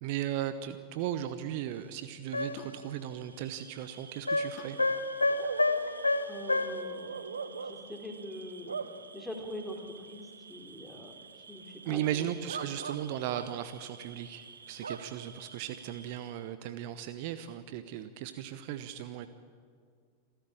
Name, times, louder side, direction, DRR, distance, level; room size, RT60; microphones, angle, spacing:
voice 1, 0.0-4.8 11.8-19.3, right 11 dB, 45° right, 12 dB, 0.9 m, -36 dB
sound 1, 2.3-2.7 4.3-6.8, left 2 dB, 85° left, 1.1 m, -29 dB
sound 2, 2.6-2.9 4.6-4.9 5.9-6.1, left 7 dB, 45° left, 3.0 m, -48 dB
Bark / Cricket, 3.2-16.5, right 5 dB, 70° right, 1.1 m, -44 dB
voice 2, 6.3-8.7 9.1-12.3, left 1 dB, 5° left, 2 dB, 3.6 m, -44 dB
27.0 x 14.0 x 8.7 m, 2.1 s
figure-of-eight pair, 90°, 0 cm